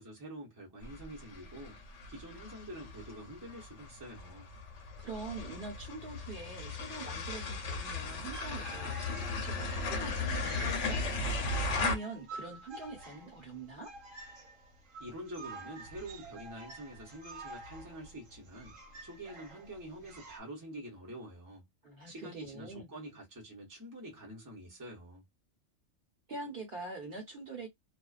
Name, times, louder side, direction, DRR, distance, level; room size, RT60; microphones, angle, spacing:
voice 1, 0.0-1.8 2.1-4.5 15.0-18.8 19.0-21.7 22.1-25.3, right 1 dB, 20° right, 0.8 m, -46 dB
sound 1, 0.8-11.9, left 3 dB, 70° left, 1.0 m, -37 dB
voice 2, 5.0-11.0 11.7-13.9 21.8-22.9 26.3-27.7, right 3 dB, 50° right, 1.0 m, -44 dB
sound 2, 8.3-20.4, right 2 dB, 80° right, 1.2 m, -49 dB
2.5 x 2.2 x 2.3 m
omnidirectional pair, 1.3 m